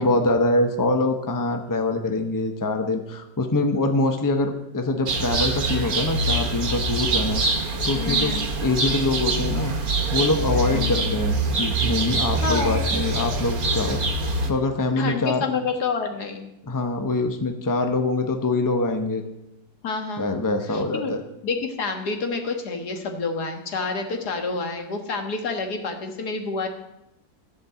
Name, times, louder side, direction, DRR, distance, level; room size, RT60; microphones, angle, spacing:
voice 1, 0.0-7.4 7.8-8.3 8.6-9.7 10.1-14.2 14.5-15.4 16.7-19.2 20.2-21.2, left 2 dB, 15° left, 5 dB, 0.8 m, -24 dB
sound 1, 5.1-14.5, right 2 dB, 65° right, 1.7 m, -24 dB
voice 2, 7.9-8.5 10.7-11.2 12.4-12.8 15.0-16.5 19.8-20.3 20.7-21.1 21.4-26.7, left 4 dB, 85° left, 4 dB, 2.1 m, -28 dB
14.5 x 5.3 x 8.0 m, 0.88 s
omnidirectional pair, 1.7 m